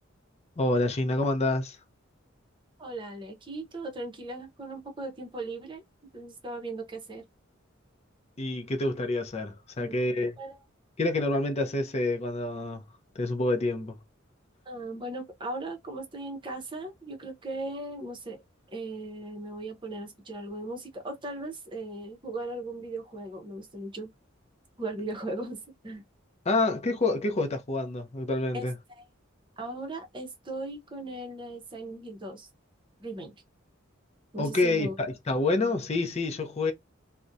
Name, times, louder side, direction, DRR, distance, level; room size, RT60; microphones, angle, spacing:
voice 1, 0.6-1.8 8.4-10.3 11.0-12.8 13.2-14.0 26.5-28.7 34.4-36.7, left 2 dB, 30° left, 0.6 m, -27 dB
voice 2, 2.8-5.8 6.1-7.2 9.8-10.0 10.4-10.6 14.7-18.4 18.7-24.1 24.8-26.0 28.5-28.6 28.9-29.0 29.6-32.5 33.0-33.3 34.3-35.0, right 2 dB, 25° right, 0.7 m, -38 dB
2.4 x 2.1 x 2.6 m
head